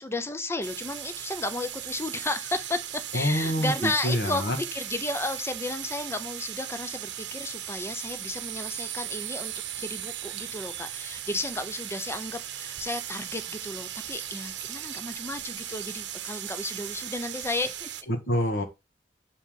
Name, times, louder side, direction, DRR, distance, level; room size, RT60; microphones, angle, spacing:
voice 1, 0.0-2.8 3.1-17.9, left 2 dB, 15° left, 0.6 m, -33 dB
sound 1, 0.6-18.0, right 11 dB, 80° right, 0.8 m, -37 dB
voice 2, 3.1-4.6 18.1-18.6, equal, 65° left, 1.6 m, -26 dB
6.8 x 4.6 x 3.7 m
head